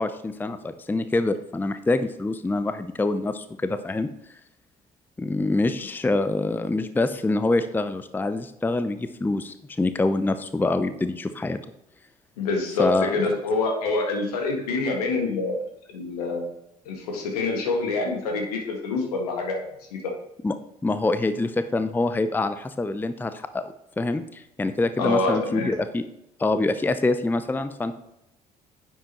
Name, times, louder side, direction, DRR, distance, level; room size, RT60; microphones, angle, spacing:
voice 1, 0.0-4.1 5.2-11.6 12.8-13.1 20.4-20.5 20.8-26.0 26.4-27.9, left 2 dB, 10° left, 11 dB, 0.5 m, -25 dB
voice 2, 12.4-16.5 16.9-20.1 25.0-25.7, left 3 dB, 70° left, 2 dB, 1.7 m, -26 dB
10.0 x 7.5 x 3.0 m, 0.83 s
figure-of-eight pair, 50°, 20 cm